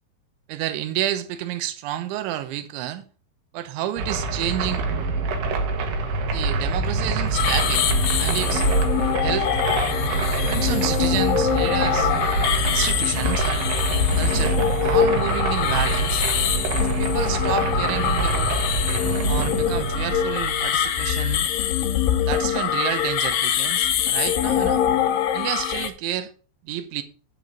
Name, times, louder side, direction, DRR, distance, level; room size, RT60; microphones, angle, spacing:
voice 1, 0.5-3.1 3.5-4.8 6.3-7.9 8.2-8.7 9.2-9.5 10.4-12.1 12.6-13.7 14.2-16.2 16.8-18.5 19.3-21.5 22.2-24.9 25.3-26.3 26.6-27.0, right 12 dB, 85° right, 3.3 m, -29 dB
sound 1, 4.0-21.3, right 3 dB, 65° right, 3.2 m, -25 dB
sound 2, 7.3-25.9, left 10 dB, 85° left, 2.0 m, -24 dB
9.1 x 8.7 x 3.8 m
omnidirectional pair, 5.3 m